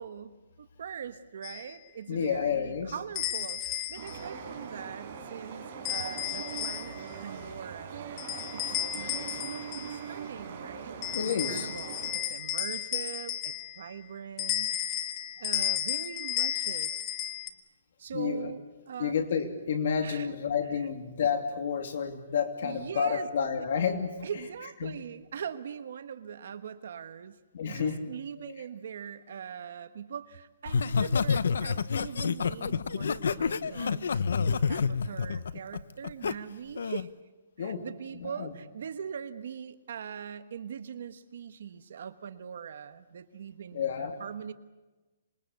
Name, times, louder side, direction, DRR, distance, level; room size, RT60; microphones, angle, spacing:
voice 1, 0.0-8.1 8.5-10.9 11.3-14.7 15.4-17.1 18.0-19.2 20.0-20.3 22.6-23.3 23.5-23.6 24.2-37.1 37.6-44.5, right 7 dB, 60° right, 11 dB, 1.3 m, -42 dB
sound 1, 1.4-1.6 3.2-4.2 5.8-7.1 8.2-10.0 11.0-13.9 14.4-17.5, left 12 dB, 20° left, 1.2 m, -33 dB
voice 2, 2.1-2.9 11.1-11.7 18.1-18.5 19.0-24.1 24.8-25.0 27.5-28.0 28.4-28.6 37.6-37.8 38.1-38.5 43.7-44.2, left 7 dB, 55° left, 6 dB, 2.7 m, -30 dB
sound 2, 3.9-12.1, right 6 dB, 35° right, 5.0 m, -41 dB
Laughter, 30.7-36.3 36.8-37.1, left 5 dB, 85° left, 0.9 m, -28 dB
26.5 x 22.0 x 8.3 m, 1.1 s
hypercardioid pair, 170°, 0 cm